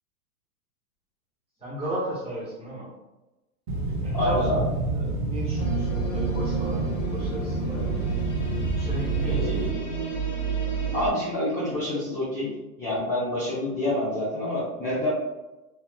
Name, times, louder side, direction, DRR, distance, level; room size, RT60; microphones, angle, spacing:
voice 1, 1.6-2.9 4.0-4.5 4.9-8.1 8.7-9.5, right 1 dB, 10° right, -7 dB, 1.5 m, -35 dB
sound 1, 3.7-9.7, right 2 dB, 35° right, 0.6 m, -29 dB
voice 2, 4.1-4.6 9.2-10.2 10.9-12.5 12.8-15.1, left 1 dB, 15° left, -9 dB, 0.7 m, -27 dB
sound 2, 5.6-11.1, right 5 dB, 50° left, 1.4 m, -30 dB
3.4 x 3.0 x 2.2 m, 1.0 s
hypercardioid pair, 130°, 47 cm